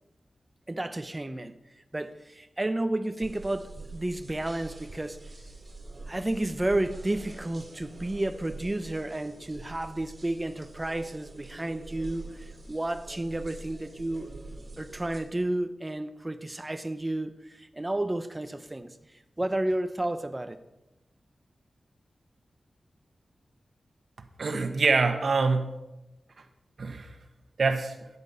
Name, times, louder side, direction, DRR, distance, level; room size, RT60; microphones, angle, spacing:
voice 1, 0.7-1.5 1.9-5.2 6.1-14.4 14.8-19.0 19.4-20.6, right 1 dB, 20° right, 0.9 m, -31 dB
sound 1, 3.2-15.2, right 2 dB, 35° right, 2.6 m, -45 dB
voice 2, 24.4-25.7 26.8-27.1 27.6-27.9, right 4 dB, 65° right, 1.4 m, -25 dB
13.5 x 9.8 x 5.5 m
wide cardioid pair, 90°, 0 cm